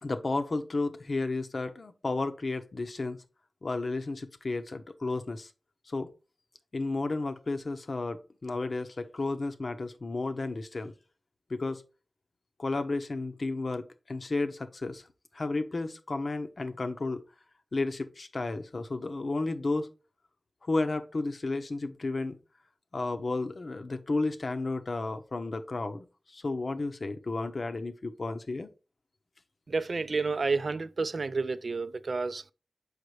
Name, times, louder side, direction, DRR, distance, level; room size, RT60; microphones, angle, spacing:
voice 1, 0.0-3.2 3.6-5.5 5.9-6.1 6.7-10.9 11.5-11.8 12.6-15.0 15.3-17.2 17.7-19.9 20.6-22.4 22.9-28.7, left 3 dB, 60° left, 0.8 m, -32 dB
voice 2, 29.7-32.5, right 4 dB, 70° right, 0.4 m, -30 dB
6.5 x 5.2 x 3.3 m
wide cardioid pair, 85°, 0 cm